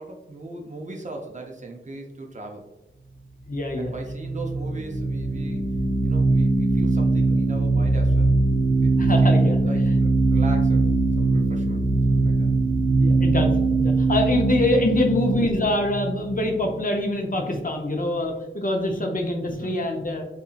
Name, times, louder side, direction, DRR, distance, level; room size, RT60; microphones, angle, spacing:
voice 1, 0.0-2.7 3.8-5.7 6.0-8.3 8.8-10.9 11.2-12.5 15.1-15.3 19.5-19.7, right 2 dB, 40° right, 1 dB, 0.5 m, -38 dB
voice 2, 3.5-3.9 9.0-9.6 13.0-20.2, left 1 dB, 45° left, 2 dB, 0.5 m, -24 dB
sound 1, 3.7-16.9, right 3 dB, 80° right, 1.0 m, -21 dB
2.7 x 2.6 x 2.4 m, 0.91 s
wide cardioid pair, 45°, 20 cm